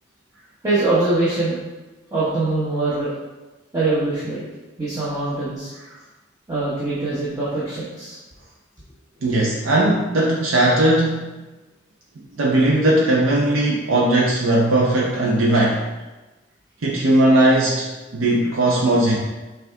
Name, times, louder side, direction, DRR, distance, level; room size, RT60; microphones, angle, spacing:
voice 1, 0.6-1.6 2.1-3.1 3.7-4.4 4.8-5.7 6.5-8.2 9.3-9.4, right 2 dB, 15° right, -10 dB, 0.9 m, -23 dB
voice 2, 9.2-11.3 12.3-15.8 16.8-17.9 18.1-19.2, right 1 dB, 85° right, -4 dB, 0.6 m, -18 dB
6.0 x 2.4 x 3.4 m, 1.1 s
head